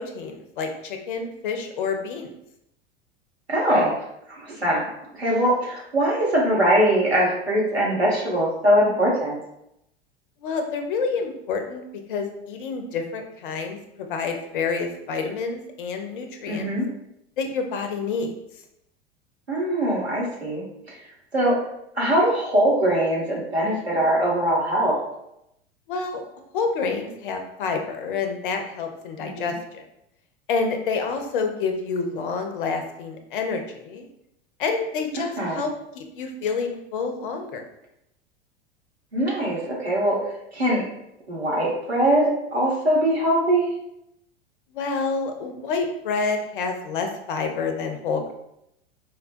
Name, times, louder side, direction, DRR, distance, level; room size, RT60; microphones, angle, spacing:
voice 1, 0.0-2.3 10.4-11.8 12.1-16.7 17.4-18.3 25.9-26.2 26.5-29.8 30.5-34.1 34.6-35.7 35.9-37.6 44.7-48.3, left 4 dB, 55° left, 5 dB, 0.6 m, -28 dB
voice 2, 3.5-4.0 4.3-4.9 5.1-9.4 16.5-16.9 19.5-21.6 21.9-25.0 29.2-29.6 35.2-35.7 39.1-40.2 40.5-40.8 41.3-43.7, right 1 dB, 85° right, -5 dB, 1.1 m, -22 dB
4.2 x 2.2 x 2.5 m, 0.81 s
figure-of-eight pair, 85°, 31 cm